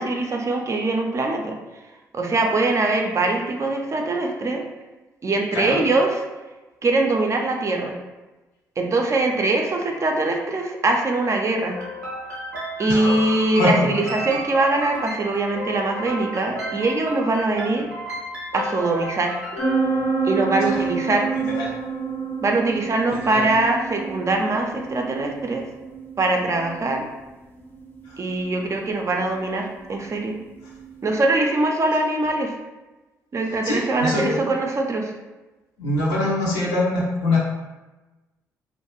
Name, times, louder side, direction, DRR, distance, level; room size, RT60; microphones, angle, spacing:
voice 1, 0.0-1.5 2.1-4.6 5.2-6.2 6.8-8.0 8.8-11.8 12.8-17.9 18.5-19.4 20.2-21.3 22.4-25.7 26.2-27.1 28.2-30.3 31.0-32.5 33.3-35.1, right 2 dB, 35° right, 2 dB, 0.4 m, -22 dB
sound 1, 11.7-19.7, equal, 85° right, 0.5 m, -33 dB
voice 2, 12.9-13.7 20.6-20.8 21.4-21.7 23.1-23.5 33.6-34.5 35.8-37.4, left 2 dB, 75° left, -4 dB, 0.6 m, -24 dB
sound 2, 19.6-31.1, right 4 dB, 25° left, 0.6 m, -29 dB
2.3 x 2.1 x 2.9 m, 1.1 s
figure-of-eight pair, 45°, 9 cm